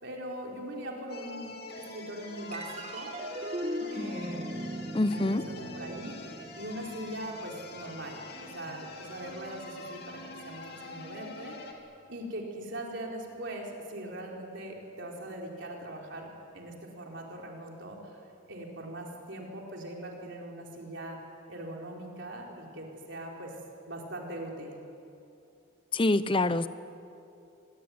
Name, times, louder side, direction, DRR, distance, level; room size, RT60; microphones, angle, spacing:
voice 1, 0.0-3.1 3.9-4.6 5.2-11.8 12.1-16.3 16.5-18.2 18.5-21.2 21.5-23.5 23.9-24.8, right 1 dB, 55° right, -1 dB, 4.5 m, -41 dB
sound 1, 1.1-11.7, left 3 dB, 45° left, 2.8 m, -46 dB
sound 2, 2.5-9.2, equal, 30° right, 1.4 m, -39 dB
voice 2, 4.9-5.4 25.9-26.7, left 2 dB, 25° left, 13 dB, 0.7 m, -25 dB
25.0 x 21.0 x 9.6 m, 2.7 s
head